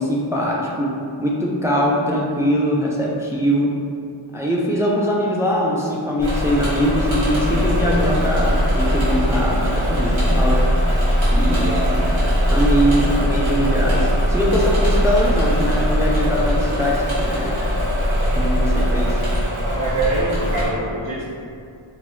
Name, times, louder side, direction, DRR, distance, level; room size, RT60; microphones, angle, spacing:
voice 1, 0.0-3.8 4.3-10.6 11.3-12.1 12.5-17.7 18.3-19.2, equal, 5° right, -4 dB, 0.3 m, -22 dB
Engine / Mechanisms, 6.2-20.7, equal, 70° right, 1.3 m, -20 dB
voice 2, 11.5-12.0 19.6-21.2, right 2 dB, 40° right, -9 dB, 0.7 m, -24 dB
2.9 x 2.2 x 3.0 m, 2.4 s
wide cardioid pair, 50°, 49 cm